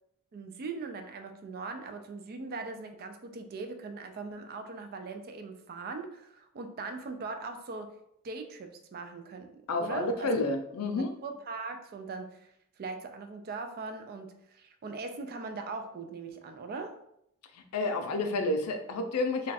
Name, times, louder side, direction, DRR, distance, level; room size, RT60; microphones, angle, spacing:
voice 1, 0.3-7.9 8.2-10.3 10.9-12.5 12.8-16.9, right 3 dB, 45° right, 6 dB, 0.3 m, -40 dB
voice 2, 9.7-11.1 17.5-19.5, left 2 dB, 90° left, 6 dB, 0.4 m, -30 dB
2.3 x 2.3 x 4.0 m, 0.76 s
head